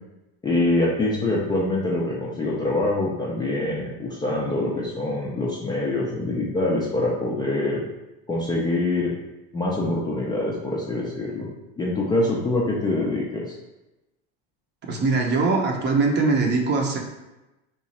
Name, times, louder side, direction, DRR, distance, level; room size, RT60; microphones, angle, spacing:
voice 1, 0.4-7.8 8.3-9.1 9.5-11.5 11.8-13.5, left 2 dB, 15° left, -5 dB, 0.3 m, -24 dB
voice 2, 14.9-17.0, right 3 dB, 30° right, 2 dB, 0.6 m, -21 dB
3.0 x 2.4 x 4.0 m, 0.99 s
supercardioid pair, 130°, 34 cm